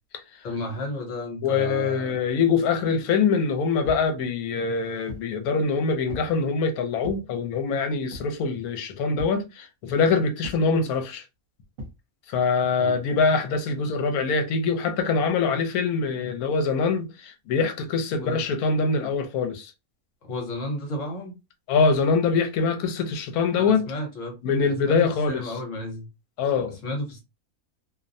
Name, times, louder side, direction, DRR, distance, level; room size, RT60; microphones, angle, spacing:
voice 1, 0.4-2.2 12.8-13.0 18.2-18.4 20.2-21.4 23.6-24.4 24.7-26.1 26.6-27.2, left 1 dB, 60° left, 1.1 m, -33 dB
voice 2, 1.4-11.2 12.3-19.7 21.7-23.9 24.4-25.5 26.4-26.8, left 5 dB, 80° left, 1.1 m, -24 dB
sound 1, 3.8-4.1 4.7-5.3 6.1-6.4 7.0-7.3 8.1-8.4 9.2-9.5 10.4-10.7 11.8-12.0, left 1 dB, 60° right, 1.1 m, -39 dB
2.6 x 2.1 x 2.5 m
omnidirectional pair, 1.6 m